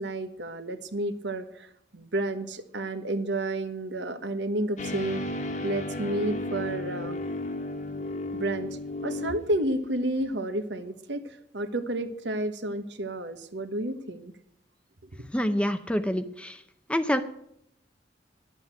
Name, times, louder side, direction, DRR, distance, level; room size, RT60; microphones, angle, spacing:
voice 1, 0.0-5.2 5.6-7.2 8.3-14.3, right 1 dB, 75° right, 9 dB, 1.3 m, -31 dB
sound 1, 4.8-9.7, left 2 dB, 40° left, 1.4 m, -34 dB
voice 2, 15.3-16.6 16.9-17.2, equal, 5° left, 10 dB, 0.6 m, -26 dB
11.0 x 8.2 x 8.9 m, 0.72 s
head